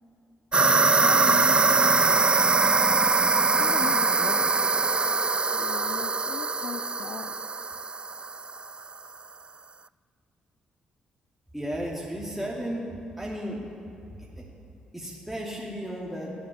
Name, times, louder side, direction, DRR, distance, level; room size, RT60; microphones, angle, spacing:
sound 1, 0.5-8.7, right 4 dB, 25° right, 0.3 m, -23 dB
voice 1, 0.6-2.4 3.6-4.7 5.5-7.4, left 8 dB, 55° left, 11 dB, 0.5 m, -38 dB
voice 2, 11.5-12.9 13.2-13.6 14.9-16.3, equal, ahead, -5 dB, 2.6 m, -33 dB
13.5 x 7.5 x 9.7 m, 2.9 s
hypercardioid pair, 40°, 4 cm